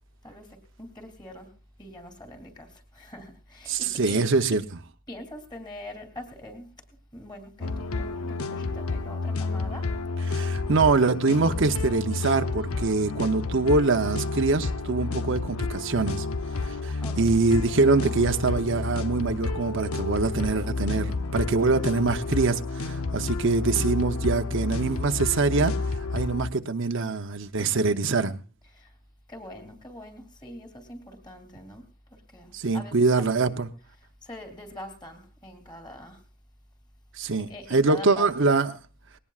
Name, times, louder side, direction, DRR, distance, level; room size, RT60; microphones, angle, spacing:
voice 1, 0.2-4.6 5.1-6.7 7.1-9.9 17.0-17.4 27.7-28.1 28.6-28.9 29.3-36.2 37.3-38.3, left 1 dB, 20° left, 2.8 m, -44 dB
voice 2, 3.7-4.6 10.3-16.3 16.6-25.7 26.1-28.4 32.5-33.7 37.1-38.7, right 3 dB, 60° right, 0.8 m, -24 dB
sound 1, 7.6-26.5, left 3 dB, 85° left, 0.8 m, -30 dB
19.5 x 18.0 x 2.4 m
head